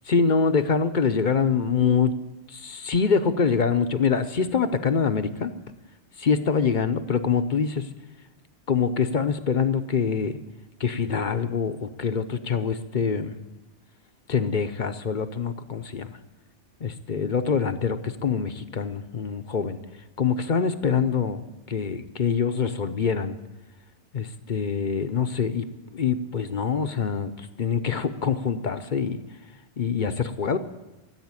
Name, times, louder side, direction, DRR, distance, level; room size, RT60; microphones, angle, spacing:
voice 1, 0.1-2.1 2.5-5.5 6.2-7.9 8.7-10.4 10.8-13.3 14.3-16.1 16.8-19.8 20.2-21.4 21.7-23.4 24.1-29.2 29.8-30.6, left 6 dB, 45° left, 9 dB, 0.9 m, -25 dB
15.0 x 8.1 x 9.6 m, 1.1 s
omnidirectional pair, 1.2 m